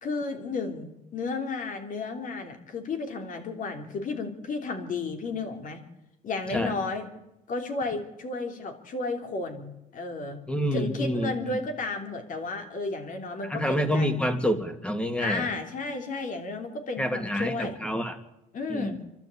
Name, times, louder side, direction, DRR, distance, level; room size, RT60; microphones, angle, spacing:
voice 1, 0.0-5.8 6.2-7.0 7.5-10.4 10.7-14.2 15.2-17.7 18.5-19.0, left 3 dB, 50° left, 5 dB, 3.4 m, -33 dB
voice 2, 10.5-11.6 13.4-15.5 17.0-18.2 18.7-19.0, equal, 5° left, 8 dB, 2.2 m, -28 dB
27.0 x 12.0 x 8.5 m, 0.93 s
cardioid pair, 110°, 17 cm